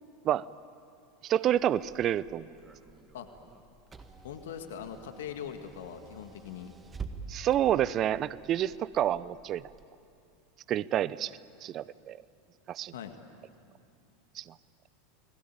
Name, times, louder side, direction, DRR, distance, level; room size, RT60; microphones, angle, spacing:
voice 1, 1.2-2.5 7.3-9.6 10.7-12.2 12.7-12.9 14.4-14.5, right 11 dB, 40° right, 19 dB, 0.6 m, -29 dB
Car / Engine, 1.5-9.8, right 4 dB, 20° right, 1.8 m, -48 dB
voice 2, 4.2-6.7 12.9-13.1, left 8 dB, 70° left, 7 dB, 1.7 m, -41 dB
30.0 x 20.5 x 8.7 m, 2.5 s
figure-of-eight pair, 85°, 0 cm